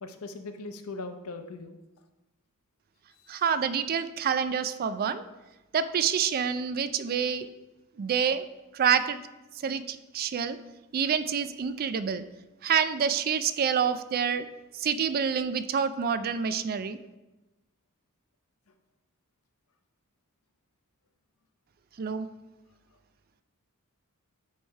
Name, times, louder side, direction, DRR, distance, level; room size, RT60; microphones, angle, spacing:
voice 1, 0.0-1.8 3.1-3.4, left 3 dB, 75° left, 7 dB, 0.7 m, -40 dB
voice 2, 3.3-5.2 5.7-7.5 8.0-8.4 8.7-9.2 9.6-10.6 10.9-12.2 12.6-14.5 14.7-17.0 22.0-22.3, right 7 dB, 45° right, 13 dB, 0.3 m, -27 dB
9.5 x 3.3 x 4.5 m, 1.1 s
head